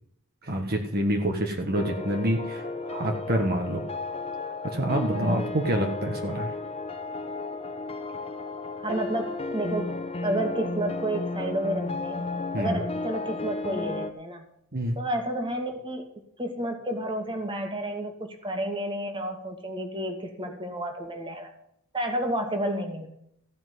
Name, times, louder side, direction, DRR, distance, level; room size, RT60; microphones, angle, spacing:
voice 1, 0.4-3.8 4.6-6.5 12.5-12.8 14.7-15.0, right 1 dB, 45° right, 2 dB, 1.6 m, -27 dB
sound 1, 1.7-14.1, left 3 dB, 30° left, 1.1 m, -33 dB
voice 2, 5.1-5.5 8.8-10.0 10.2-12.3 12.6-14.5 15.0-16.1 16.4-21.5 21.9-23.1, right 1 dB, 25° right, 4 dB, 2.2 m, -31 dB
15.5 x 5.9 x 9.5 m, 0.74 s
head